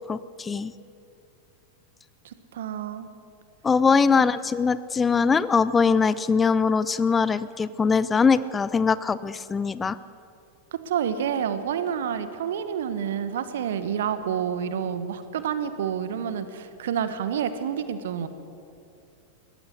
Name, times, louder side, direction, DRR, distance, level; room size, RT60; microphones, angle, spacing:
voice 1, 0.1-0.7 3.6-10.0, left 5 dB, 15° left, 16 dB, 0.5 m, -22 dB
voice 2, 2.2-3.1 10.7-18.3, right 8 dB, 60° right, 11 dB, 1.4 m, -29 dB
22.0 x 18.0 x 6.5 m, 2.6 s
figure-of-eight pair, 90°, 0 cm